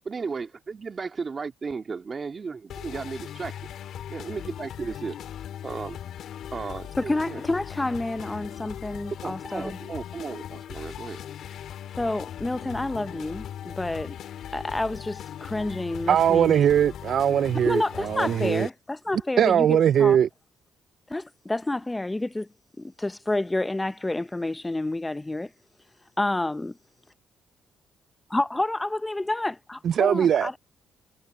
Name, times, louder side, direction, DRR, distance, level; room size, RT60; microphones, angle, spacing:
voice 1, 0.0-3.6 4.1-5.2 5.6-6.0 6.5-7.4 9.1-11.2, right 5 dB, 35° right, 2.1 m, -35 dB
sound 1, 2.7-18.7, left 10 dB, 70° left, 2.1 m, -39 dB
voice 2, 7.0-9.7 12.0-14.2 14.5-16.6 17.7-20.2 21.1-22.5 22.8-25.5 26.2-26.7 28.3-30.6, left 2 dB, 15° left, 0.7 m, -29 dB
voice 3, 16.1-18.7 19.4-20.3 29.8-30.5, right 9 dB, 65° right, 0.3 m, -20 dB
cardioid pair, 90°, 0 cm